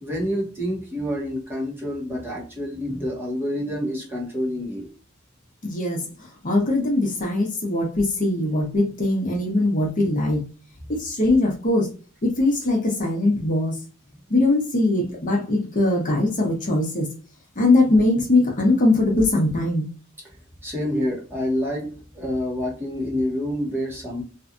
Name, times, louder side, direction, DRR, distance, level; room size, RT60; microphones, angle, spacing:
voice 1, 0.0-4.9 20.6-24.2, equal, 10° right, 0.9 m, -27 dB
voice 2, 5.6-6.0 6.4-10.4 10.9-11.9 12.2-13.7 14.3-17.1 17.6-19.9, left 2 dB, 40° left, 0.8 m, -21 dB
2.6 x 2.3 x 2.5 m
head